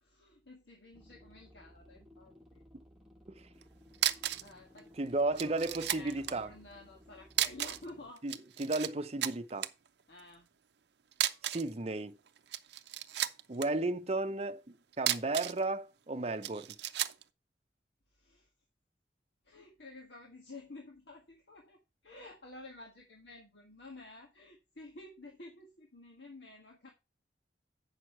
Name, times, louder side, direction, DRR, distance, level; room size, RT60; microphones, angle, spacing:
voice 1, 0.0-2.6 4.4-8.2 10.1-10.5 18.1-18.5 19.4-26.9, left 2 dB, 75° left, 1.6 m, -52 dB
sound 1, 0.9-8.1, equal, ahead, 1.3 m, -59 dB
sound 2, 3.6-3.7 3.9-4.5 4.8-4.9 5.4-6.4 7.3-7.9 8.2-8.9 9.2-9.7 11.1-11.7 12.4-13.7 14.9-15.6 16.4-17.2, right 12 dB, 75° right, 0.6 m, -33 dB
voice 2, 5.0-6.5 8.2-9.7 11.4-12.2 13.5-16.8, right 2 dB, 35° right, 0.7 m, -34 dB
8.6 x 6.3 x 4.4 m
head